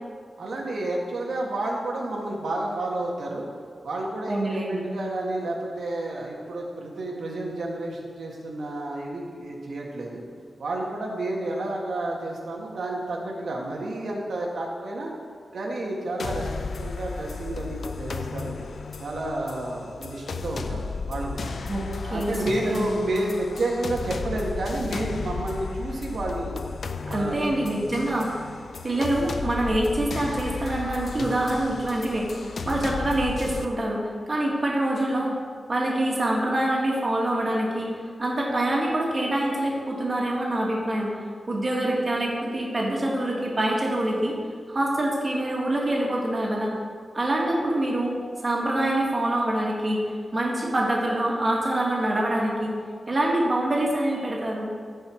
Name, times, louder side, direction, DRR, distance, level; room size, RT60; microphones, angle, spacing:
voice 1, 0.4-3.5 3.8-4.5 4.8-10.2 10.6-15.1 15.5-18.5 19.0-20.8 21.1-21.5 22.0-26.6 27.1-27.4, right 2 dB, 85° right, -2 dB, 1.8 m, -30 dB
voice 2, 4.3-4.9 21.7-21.8 22.1-23.0 27.1-28.3 28.8-35.4 35.7-37.9 38.2-41.1 41.5-44.3 44.7-46.7 47.1-48.1 48.4-50.0 50.3-52.7 53.1-54.7, right 1 dB, 35° right, -2 dB, 2.0 m, -25 dB
sound 1, 16.2-33.6, left 4 dB, 65° left, 0.5 m, -34 dB
15.0 x 5.6 x 4.6 m, 2.1 s
wide cardioid pair, 150°, 0 cm